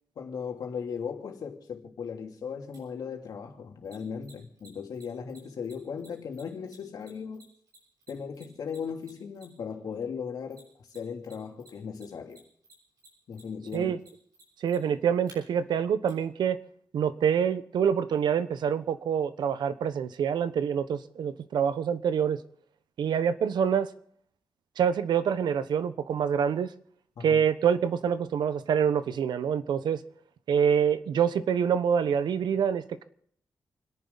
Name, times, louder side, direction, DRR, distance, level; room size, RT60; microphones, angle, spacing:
voice 1, 0.2-7.5 8.1-12.4 13.3-13.9 27.2-27.4, left 6 dB, 60° left, 2.8 m, -37 dB
Mechanisms, 2.7-2.8 3.8-9.7 10.5-11.3 11.6-15.3 16.1-16.2, right 2 dB, 60° right, 7.2 m, -54 dB
voice 2, 14.6-16.6 16.9-22.4 23.0-23.9 24.8-26.7 27.2-30.0 30.5-33.0, right 7 dB, 90° right, 1.1 m, -26 dB
29.5 x 11.0 x 4.0 m
wide cardioid pair, 175°, 7 cm